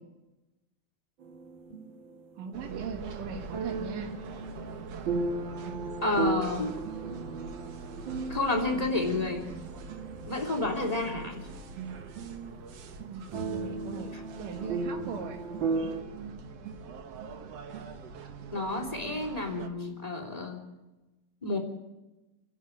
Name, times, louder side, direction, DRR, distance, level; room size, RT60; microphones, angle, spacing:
sound 1, 1.2-2.5 3.5-12.3 12.6-12.7 13.3-16.0, right 3 dB, 40° right, 2.2 m, -36 dB
voice 1, 2.4-4.1 13.1-15.4, right 7 dB, 85° right, 4 dB, 3.3 m, -39 dB
sound 2, 2.5-19.7, right 5 dB, 55° right, 2.1 m, -43 dB
voice 2, 6.0-6.7 8.3-9.5 10.2-11.5 18.5-20.6 21.4-21.6, left 2 dB, 10° left, 3 dB, 3.0 m, -30 dB
26.5 x 11.5 x 9.4 m, 1.1 s
omnidirectional pair, 3.7 m